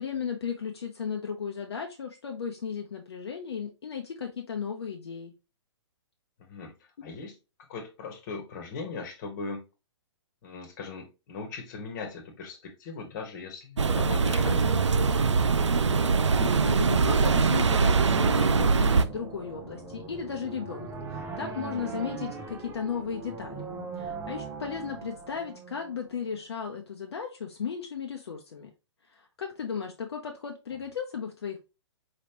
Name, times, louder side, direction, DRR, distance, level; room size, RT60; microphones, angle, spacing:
voice 1, 0.0-5.3 15.9-23.6 24.0-28.7 29.1-31.6, left 6 dB, 60° left, 0.8 m, -35 dB
voice 2, 6.4-7.4 7.7-9.6 10.4-14.7, left 4 dB, 40° left, 1.3 m, -39 dB
sound 1, 13.8-19.0, right 4 dB, 80° right, 0.4 m, -23 dB
sound 2, 16.3-26.3, right 4 dB, 15° right, 0.7 m, -41 dB
4.9 x 3.2 x 2.9 m
figure-of-eight pair, 125°, 15 cm